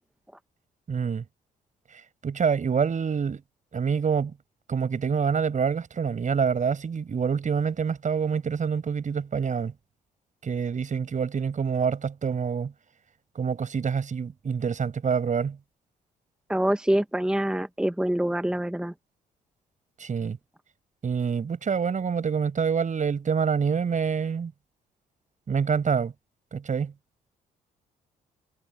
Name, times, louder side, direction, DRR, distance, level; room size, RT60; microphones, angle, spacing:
voice 1, 0.9-1.2 2.2-3.4 3.7-4.3 4.7-9.7 10.4-12.7 13.4-15.6 20.0-20.4 21.0-24.5 25.5-26.1 26.5-26.9, right 6 dB, 45° right, 5.6 m, -26 dB
voice 2, 16.5-18.9, right 1 dB, 5° right, 1.1 m, -25 dB
supercardioid pair, 55°, 18 cm